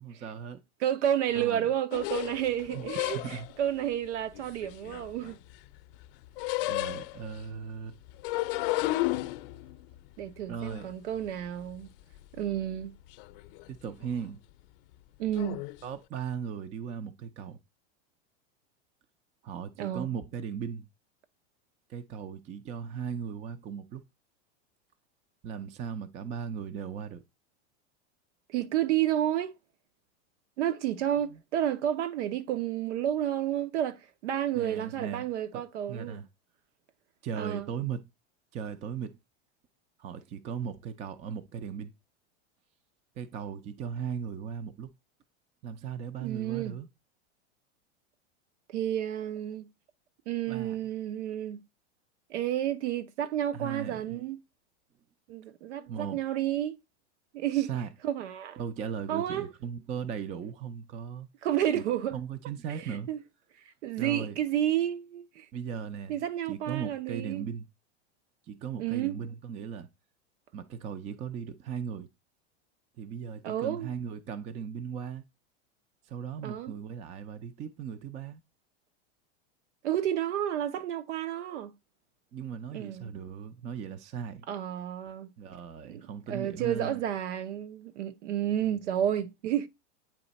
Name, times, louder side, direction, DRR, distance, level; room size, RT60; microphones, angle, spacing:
voice 1, 0.0-0.6 1.4-1.7 2.7-2.8 3.1-3.5 6.7-8.0 10.5-10.9 13.7-14.4 15.8-17.6 19.4-20.9 21.9-24.0 25.4-27.2 31.3-31.4 34.5-35.2 35.5-35.6 35.9-36.3 37.2-38.0 38.5-39.2 40.0-41.9 43.2-44.9 45.6-46.9 50.5-50.8 53.5-54.2 55.9-56.2 57.5-57.9 58.6-61.3 61.7-61.8 62.1-63.1 64.0-64.4 65.5-67.7 68.5-69.9 70.5-72.1 73.0-75.2 76.1-78.4 82.3-84.5 85.4-87.0 88.6-88.8, right 7 dB, 20° right, 0.4 m, -37 dB
voice 2, 0.8-5.4 10.2-11.9 12.3-12.9 15.2-15.6 19.8-20.1 28.5-29.5 30.6-36.2 37.4-37.7 46.2-46.7 48.7-49.7 50.3-51.6 52.3-54.4 55.3-56.8 57.3-57.7 58.0-58.6 59.1-59.5 61.4-62.2 62.7-63.2 63.8-65.5 66.1-67.5 68.8-69.2 73.4-73.9 76.4-76.7 79.8-81.7 82.7-83.1 84.5-85.3 85.9-89.7, right 11 dB, 80° right, 1.0 m, -31 dB
sound 1, 1.9-3.6 4.3-5.6 5.9-7.4 8.1-11.8 12.2-12.9 13.1-13.7 14.0-14.3 15.3-15.8, left 19 dB, 50° left, 0.6 m, -33 dB
8.7 x 3.3 x 4.1 m
supercardioid pair, 145°, 34 cm